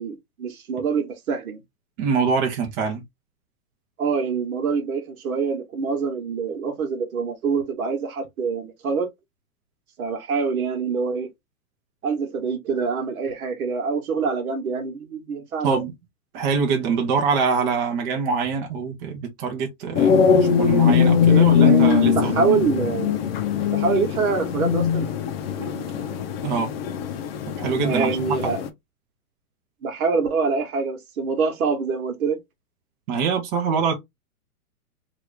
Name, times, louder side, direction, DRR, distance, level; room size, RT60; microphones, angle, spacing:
voice 1, 0.0-1.6 4.0-9.1 10.0-11.3 12.0-15.8 21.3-23.2 23.7-25.1 25.6-26.2 27.8-28.6 29.8-32.4, right 5 dB, 70° right, 1.3 m, -25 dB
voice 2, 2.0-3.0 15.6-15.9 16.3-22.5 26.4-26.7 27.6-28.5 33.1-33.9, right 5 dB, 30° right, 0.7 m, -24 dB
sound 1, 19.9-28.7, left 7 dB, 40° left, 0.6 m, -21 dB
2.9 x 2.5 x 3.2 m
hypercardioid pair, 140°, 44 cm